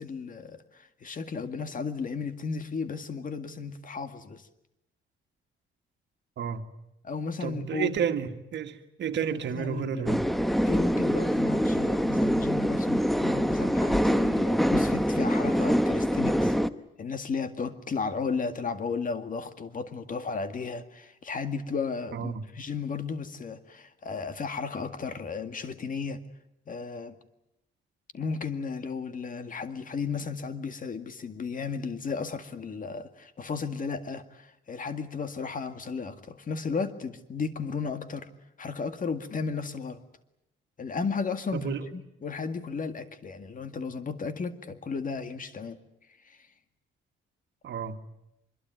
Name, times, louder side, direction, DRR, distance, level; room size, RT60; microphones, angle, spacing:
voice 1, 0.0-4.4 7.0-8.0 9.3-10.1 10.7-16.6 17.0-26.2 26.7-27.1 28.1-38.3 38.6-40.0 40.8-45.8 46.3-46.4, left 5 dB, 45° left, 2.1 m, -34 dB
voice 2, 7.4-10.2 22.1-22.4 41.5-41.9 47.6-48.0, right 8 dB, 65° right, 1.9 m, -31 dB
sound 1, 10.1-16.7, equal, ahead, 1.0 m, -25 dB
24.5 x 22.0 x 9.3 m
cardioid pair, 90°, 20 cm